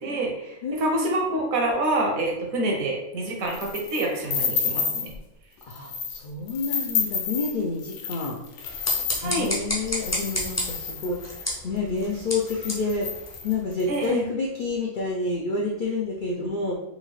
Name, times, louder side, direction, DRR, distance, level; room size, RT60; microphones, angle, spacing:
voice 1, 0.0-5.1 9.2-9.5 13.9-14.2, right 1 dB, 75° right, 0 dB, 1.3 m, -27 dB
voice 2, 0.6-1.1 5.7-8.4 9.2-13.1 13.4-16.8, left 3 dB, 85° left, -2 dB, 0.4 m, -29 dB
sound 1, 3.5-5.2 5.6-6.2 6.5-11.5 12.1-12.2 12.4-13.9, left 6 dB, 65° left, 0.8 m, -30 dB
sound 2, 8.6-13.9, left 1 dB, 20° left, 0.4 m, -32 dB
4.1 x 2.4 x 3.1 m, 0.90 s
omnidirectional pair, 1.5 m